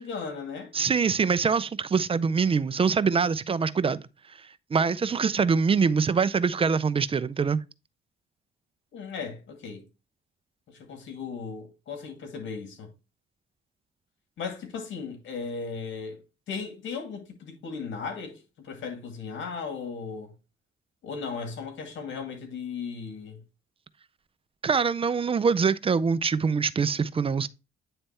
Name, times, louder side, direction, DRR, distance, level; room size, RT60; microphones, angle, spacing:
voice 1, 0.0-0.7 8.9-9.8 10.7-12.9 14.4-16.2 16.5-20.3 21.0-23.4, left 5 dB, 70° left, 2.2 m, -36 dB
voice 2, 0.7-4.0 4.7-7.6 24.6-27.5, right 5 dB, 30° right, 0.5 m, -24 dB
8.9 x 3.4 x 4.3 m
cardioid pair, 90°, 20 cm